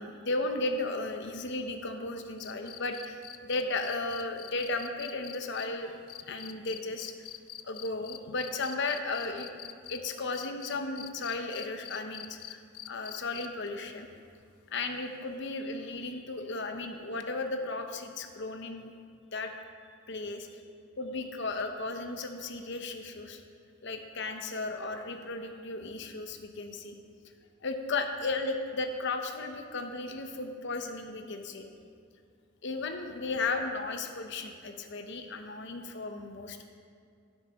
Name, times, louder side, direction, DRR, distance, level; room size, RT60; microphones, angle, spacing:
voice 1, 0.0-6.0 6.3-7.3 7.6-9.5 9.9-14.1 14.7-18.9 19.3-19.5 20.1-20.6 21.0-23.4 23.8-26.9 27.6-31.7 32.6-36.6, left 3 dB, 55° left, 5 dB, 0.8 m, -35 dB
sound 1, 2.4-10.0 10.3-13.7 15.3-15.4, left 13 dB, 80° left, 0.4 m, -45 dB
12.5 x 6.6 x 5.1 m, 2.3 s
head